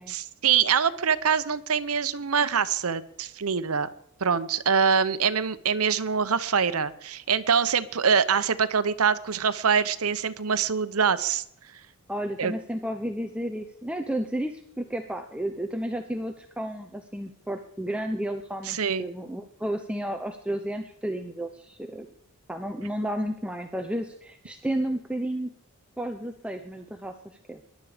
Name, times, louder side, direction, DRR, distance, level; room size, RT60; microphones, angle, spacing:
voice 1, 0.1-3.9 4.2-11.4 12.4-12.5 18.7-19.0, right 6 dB, 80° right, 13 dB, 0.9 m, -24 dB
voice 2, 12.1-22.1 22.5-25.5 26.0-27.1 27.5-27.6, right 1 dB, 5° right, 5 dB, 0.7 m, -32 dB
21.0 x 11.5 x 5.0 m, 0.72 s
head